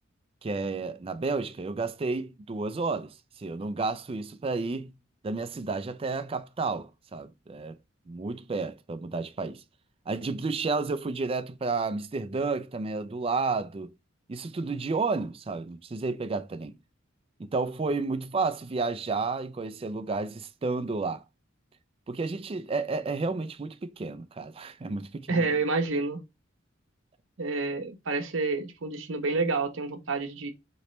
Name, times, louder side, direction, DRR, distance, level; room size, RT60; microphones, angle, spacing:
voice 1, 0.4-4.9 5.2-7.8 8.1-9.6 10.1-13.9 14.3-16.8 17.4-21.2 22.1-25.5, right 3 dB, 30° right, 0.4 m, -31 dB
voice 2, 25.3-26.2 27.4-30.5, right 3 dB, 75° right, 0.8 m, -28 dB
4.1 x 3.0 x 3.1 m
head